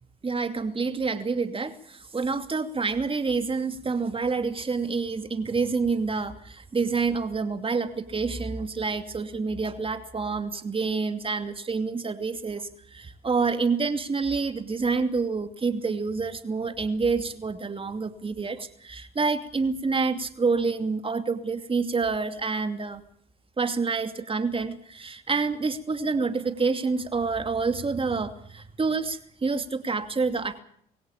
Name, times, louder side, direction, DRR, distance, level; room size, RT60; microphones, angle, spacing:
voice 1, 0.2-23.0 23.6-30.6, right 4 dB, 25° right, 8 dB, 2.7 m, -28 dB
23.5 x 16.5 x 8.8 m, 0.65 s
hypercardioid pair, 60°, 20 cm